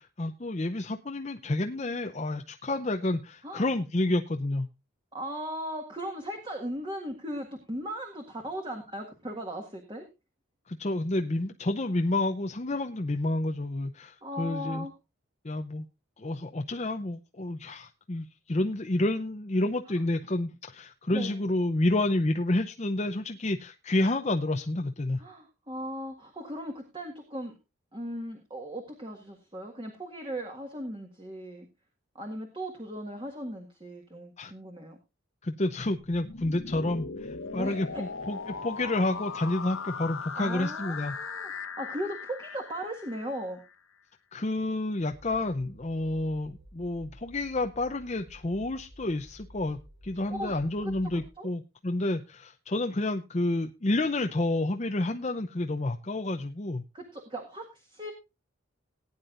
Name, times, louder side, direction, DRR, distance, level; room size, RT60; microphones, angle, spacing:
voice 1, 0.0-4.7 10.7-14.9 15.4-15.8 16.2-25.2 34.4-34.5 35.4-41.1 44.3-56.8, left 2 dB, 30° left, 5 dB, 0.6 m, -29 dB
voice 2, 5.1-10.1 14.2-14.9 21.1-21.4 25.2-27.5 27.9-31.7 32.2-35.0 37.5-38.0 40.4-41.5 41.8-43.6 50.3-50.5 50.8-51.5 56.9-58.1, equal, 25° right, 3 dB, 1.7 m, -37 dB
sound 1, 36.0-43.7, left 5 dB, 75° left, 1.4 m, -39 dB
sound 2, 45.0-51.3, equal, 70° right, 4.4 m, -53 dB
18.5 x 9.7 x 2.5 m, 0.26 s
head